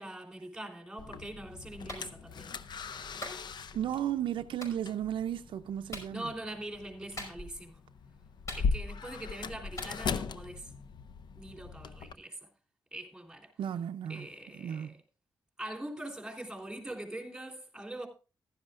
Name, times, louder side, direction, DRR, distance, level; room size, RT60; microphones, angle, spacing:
voice 1, 0.0-2.6 6.1-7.8 8.5-10.8 11.3-12.4 12.9-13.5 14.1-15.0 15.6-18.1, right 1 dB, 5° right, 3.3 m, -43 dB
sound 1, 1.0-12.1, left 5 dB, 60° left, 0.6 m, -39 dB
Clapping, 1.9-2.1 3.2-3.4 4.6-4.8 5.9-6.1 7.2-7.6 8.5-9.0 9.8-9.9, left 1 dB, 40° left, 5.5 m, -42 dB
voice 2, 3.7-6.2 13.6-14.3 14.6-14.9, right 10 dB, 80° right, 0.5 m, -34 dB
15.0 x 11.5 x 2.5 m
cardioid pair, 95°, 8 cm